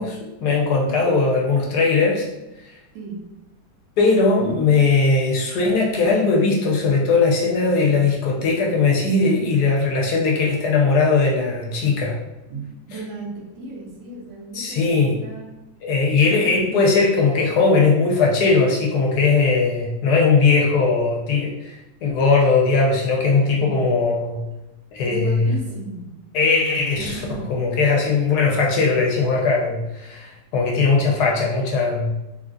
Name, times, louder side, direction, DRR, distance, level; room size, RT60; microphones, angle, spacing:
voice 1, 0.0-2.3 2.6-2.7 4.0-12.2 14.5-15.1 15.8-21.7 22.0-24.4 24.9-25.5 26.3-27.2 27.5-32.1, left 4 dB, 70° left, -1 dB, 1.1 m, -19 dB
voice 2, 2.9-3.3 12.5-15.5 16.1-16.9 23.6-23.8 25.0-26.2 27.0-27.5 28.4-28.5, right 3 dB, 90° right, -1 dB, 1.4 m, -36 dB
3.5 x 2.3 x 2.4 m, 0.96 s
omnidirectional pair, 1.9 m